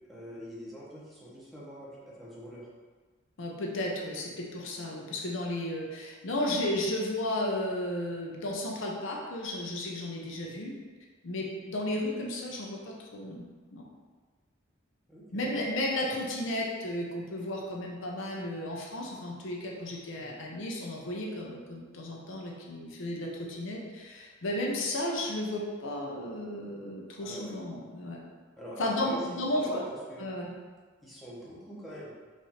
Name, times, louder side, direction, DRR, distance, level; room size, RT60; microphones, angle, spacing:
voice 1, 0.1-2.7 15.1-15.5 20.1-20.4 27.2-27.6 28.6-30.3 31.0-32.1, equal, ahead, -7 dB, 1.0 m, -43 dB
voice 2, 3.4-10.7 11.2-13.5 13.7-13.9 15.3-28.2 28.8-29.8 30.2-30.5, left 1 dB, 65° left, -1 dB, 0.7 m, -33 dB
4.7 x 2.6 x 4.2 m, 1.4 s
head